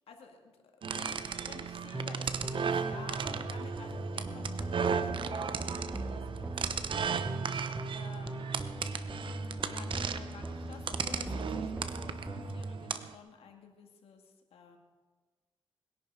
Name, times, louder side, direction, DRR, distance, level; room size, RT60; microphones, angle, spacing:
voice 1, 0.1-0.6 0.8-8.5 9.7-14.8, left 6 dB, 85° left, 3 dB, 2.2 m, -52 dB
sound 1, 0.8-13.1, right 6 dB, 60° right, 0.9 m, -36 dB
sound 2, 1.9-12.6, right 2 dB, 15° right, 1.2 m, -39 dB
21.0 x 11.0 x 4.9 m, 1.4 s
cardioid pair, 110°, 10 cm